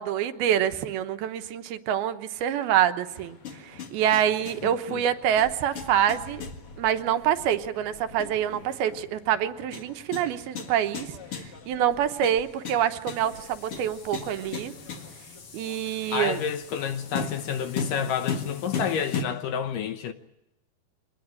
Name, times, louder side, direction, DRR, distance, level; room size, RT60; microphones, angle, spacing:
voice 1, 0.0-3.4 3.6-6.4 6.8-11.1 11.7-14.7 15.5-16.4, right 10 dB, 75° right, 2.9 m, -26 dB
sound 1, 3.1-19.2, left 5 dB, 45° left, 2.3 m, -38 dB
voice 2, 4.6-5.0 16.1-20.1, left 8 dB, 70° left, 2.3 m, -30 dB
24.0 x 19.5 x 9.7 m
omnidirectional pair, 4.6 m